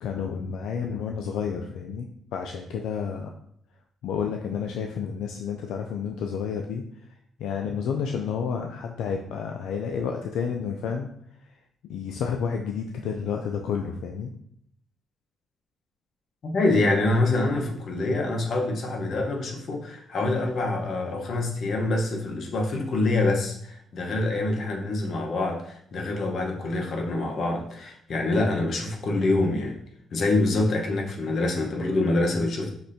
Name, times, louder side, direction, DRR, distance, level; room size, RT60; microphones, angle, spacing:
voice 1, 0.0-3.3 4.0-6.8 7.4-11.1 11.8-14.3, left 6 dB, 85° left, 3 dB, 0.3 m, -30 dB
voice 2, 16.4-29.8 30.1-32.7, left 2 dB, 60° left, 1 dB, 1.0 m, -25 dB
5.8 x 3.2 x 2.7 m, 0.68 s
cardioid pair, 85°, 0 cm